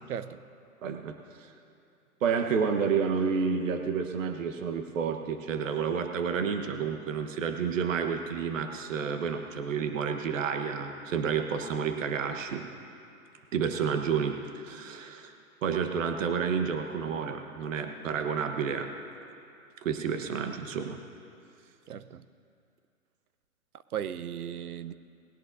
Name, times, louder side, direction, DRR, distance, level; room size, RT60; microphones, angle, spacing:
voice 1, 0.1-0.4 21.9-22.2 23.9-24.9, right 9 dB, 75° right, 14 dB, 0.8 m, -36 dB
voice 2, 0.8-1.5 2.2-12.6 13.5-14.4 14.6-15.3 15.6-18.9 19.8-21.0, right 6 dB, 60° right, 6 dB, 1.3 m, -30 dB
20.0 x 17.0 x 2.7 m, 2.5 s
hypercardioid pair, 140°, 44 cm